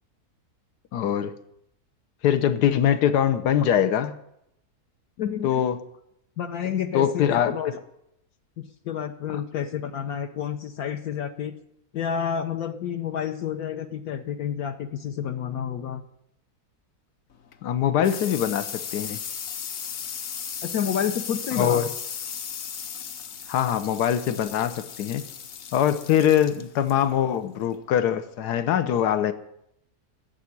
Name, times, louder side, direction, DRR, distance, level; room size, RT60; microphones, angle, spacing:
voice 1, 0.9-1.3 2.2-4.1 5.4-5.8 6.9-7.5 17.6-19.2 21.5-21.9 23.5-25.2 25.7-29.3, left 9 dB, 90° left, 11 dB, 1.3 m, -23 dB
voice 2, 5.2-5.6 6.4-7.8 8.6-11.5 11.9-16.0 20.6-21.8, left 8 dB, 70° left, 5 dB, 1.2 m, -29 dB
sound 1, 17.3-28.6, left 7 dB, 55° left, 0.9 m, -37 dB
10.5 x 7.6 x 9.8 m, 0.79 s
omnidirectional pair, 1.7 m